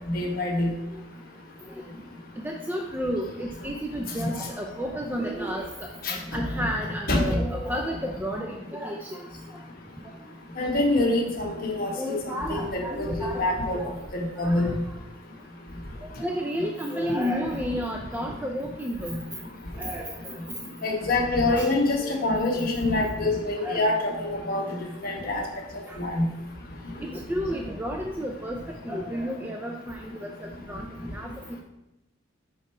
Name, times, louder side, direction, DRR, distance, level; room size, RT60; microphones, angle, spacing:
voice 1, 0.1-0.7 6.0-6.4 7.1-7.2 10.6-12.1 12.5-13.8 14.4-14.7 20.8-24.6 25.0-25.4 26.0-26.3, left 2 dB, 45° left, -1 dB, 1.2 m, -25 dB
voice 2, 2.4-9.3 11.9-13.5 13.7-13.9 14.4-14.7 16.0-19.1 19.8-20.4 21.5-21.7 22.0-22.2 23.6-24.4 25.3-25.5 25.9-26.0 27.0-28.6 28.8-31.3, equal, 10° right, 1 dB, 0.4 m, -32 dB
5.4 x 5.0 x 4.3 m, 0.88 s
head